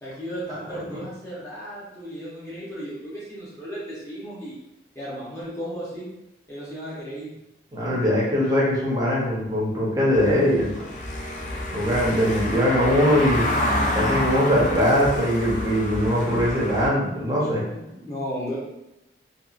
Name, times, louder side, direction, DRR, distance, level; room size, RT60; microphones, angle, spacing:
voice 1, 0.0-4.6 4.9-6.1 6.5-7.3 12.1-12.8 17.7-18.6, equal, 15° left, -8 dB, 0.8 m, -35 dB
voice 2, 7.7-10.8 11.7-13.5 13.9-17.7, equal, 20° right, -5 dB, 0.7 m, -21 dB
Car passing by / Engine, 10.1-16.9, left 1 dB, 40° left, 0.3 m, -28 dB
2.7 x 2.3 x 2.3 m, 0.91 s
head